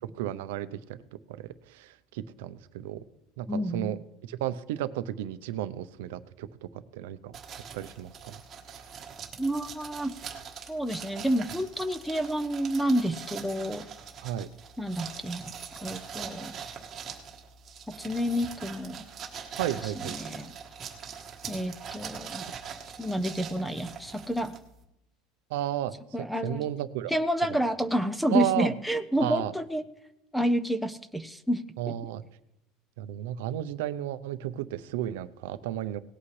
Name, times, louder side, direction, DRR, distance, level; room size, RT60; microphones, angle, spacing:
voice 1, 0.2-1.0 1.3-3.0 3.4-4.0 4.3-6.5 6.9-7.4 7.7-8.4 14.2-14.5 19.6-20.2 25.5-25.9 26.2-27.1 27.5-27.6 28.3-28.7 29.2-29.5 31.8-32.2 33.0-36.0, right 12 dB, 85° right, 13 dB, 0.6 m, -33 dB
voice 2, 3.5-4.0 9.4-10.1 10.7-13.9 14.8-15.5 15.8-16.6 18.0-19.1 19.8-20.5 21.5-22.4 23.0-24.6 26.1-26.7 27.1-29.8 30.3-31.9, equal, ahead, 13 dB, 0.4 m, -29 dB
sound 1, 7.3-24.8, right 7 dB, 20° right, 1.3 m, -42 dB
18.5 x 8.5 x 3.2 m, 0.85 s
cardioid pair, 175°, 0 cm